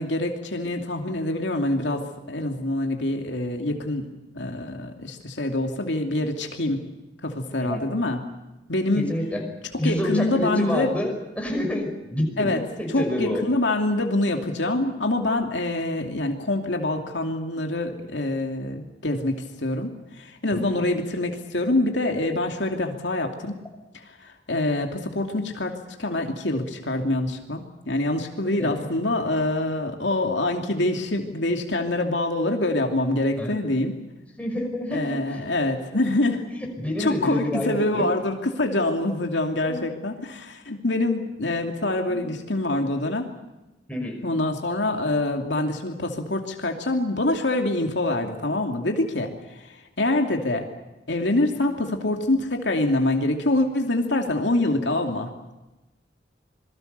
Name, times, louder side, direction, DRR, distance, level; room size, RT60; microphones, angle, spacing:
voice 1, 0.0-4.1 4.3-6.8 7.2-8.2 8.7-9.0 9.8-11.0 12.4-12.6 12.9-23.6 23.9-34.0 34.9-36.4 37.0-43.3 44.2-49.3 49.6-50.7 51.1-55.3, left 2 dB, 80° left, 3 dB, 2.7 m, -25 dB
voice 2, 8.9-9.4 9.7-12.5 12.8-13.4 20.5-20.9 28.6-28.8 33.4-33.6 34.4-35.5 36.6-38.1 39.7-39.8 42.1-42.2 43.9-44.2, left 1 dB, 10° left, 1 dB, 5.5 m, -28 dB
27.0 x 21.5 x 6.8 m, 1.0 s
head